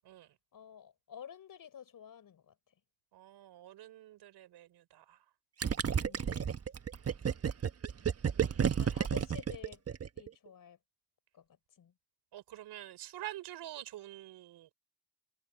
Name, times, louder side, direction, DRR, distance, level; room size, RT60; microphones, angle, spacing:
voice 1, 0.5-2.5 5.9-6.4 8.6-9.8 10.2-10.8 11.3-11.9, left 8 dB, 50° left, 5.4 m, -51 dB
voice 2, 3.1-5.2 8.3-8.8 12.3-14.7, right 14 dB, 70° right, 4.3 m, -47 dB
Gurgling, 5.6-10.3, right 7 dB, 35° right, 1.4 m, -31 dB
supercardioid pair, 70°, 41 cm